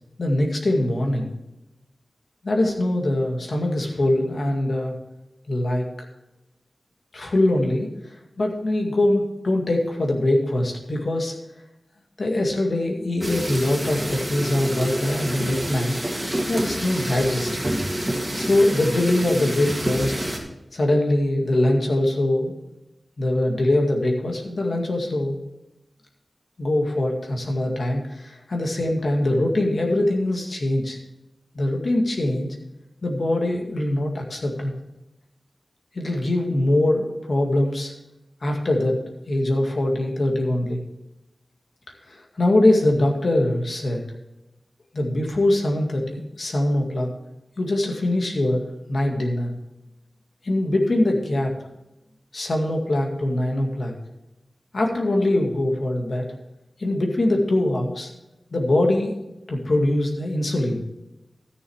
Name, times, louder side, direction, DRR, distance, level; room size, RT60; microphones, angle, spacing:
voice 1, 0.2-1.3 2.4-5.0 5.5-5.9 7.1-7.9 8.4-11.3 12.2-16.0 16.5-17.5 18.3-20.1 20.7-22.5 23.2-25.4 26.6-31.0 31.5-32.5 33.0-34.7 35.9-37.9 38.4-40.8 42.1-44.0 44.9-47.1 47.6-49.5 50.4-51.5 52.3-53.9 54.7-56.3 56.8-58.1 58.5-59.1 59.5-60.8, left 1 dB, 65° left, 1 dB, 2.0 m, -22 dB
sound 1, 13.2-20.4, right 1 dB, 15° right, 2.5 m, -28 dB
13.5 x 6.8 x 4.7 m, 0.93 s
wide cardioid pair, 95°, 0 cm